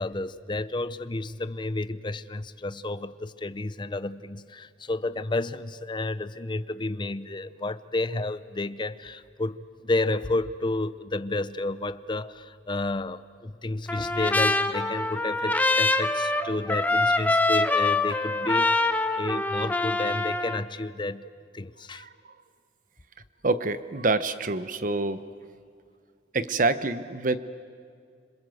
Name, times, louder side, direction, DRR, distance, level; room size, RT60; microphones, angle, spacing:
voice 1, 0.0-22.1, left 2 dB, 25° left, 14 dB, 0.6 m, -31 dB
Trumpet, 13.9-20.6, left 2 dB, 10° left, 0.9 m, -25 dB
voice 2, 23.4-25.2 26.3-27.4, right 3 dB, 50° right, 12 dB, 1.0 m, -26 dB
27.0 x 26.0 x 7.9 m, 2.2 s
head